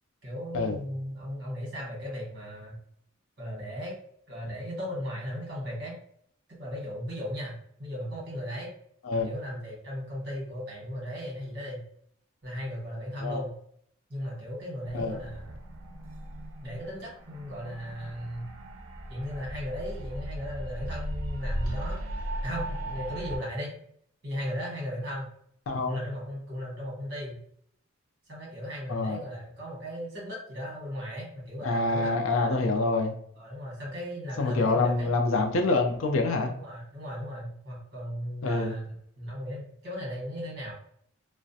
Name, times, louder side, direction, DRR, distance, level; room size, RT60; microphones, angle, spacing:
voice 1, 0.2-2.8 3.4-4.0 4.3-5.9 6.5-7.5 7.8-8.7 9.2-11.8 12.4-13.5 14.1-15.6 16.6-18.5 19.1-22.0 22.4-23.7 24.2-25.3 25.8-27.4 28.3-32.8 33.4-35.1 36.5-40.7, equal, 50° right, -4 dB, 1.2 m, -36 dB
sound 1, 14.8-23.4, right 1 dB, 85° right, 0.4 m, -37 dB
voice 2, 25.7-26.0 28.9-29.2 31.6-33.1 34.4-36.5 38.4-38.8, left 3 dB, 80° left, 4 dB, 0.4 m, -26 dB
2.3 x 2.1 x 2.7 m, 0.67 s
head